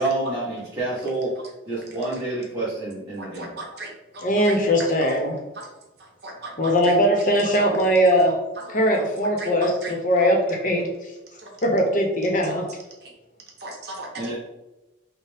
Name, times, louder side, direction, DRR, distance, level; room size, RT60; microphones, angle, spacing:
voice 1, 0.0-1.3 1.6-3.5 14.2-14.3, right 2 dB, 15° right, -11 dB, 1.2 m, -28 dB
voice 2, 3.2-4.6 5.0-5.2 5.6-5.7 6.2-6.9 7.6-7.7 8.2-8.3 8.7-8.8 9.4-9.5 9.8-9.9 11.4-11.5 13.0-13.1 13.6-14.3, right 2 dB, 60° right, 0 dB, 0.8 m, -37 dB
voice 3, 4.2-5.4 6.6-8.3 8.7-10.9 11.6-12.6, equal, 45° left, 2 dB, 0.7 m, -20 dB
5.6 x 2.0 x 3.4 m, 1.0 s
head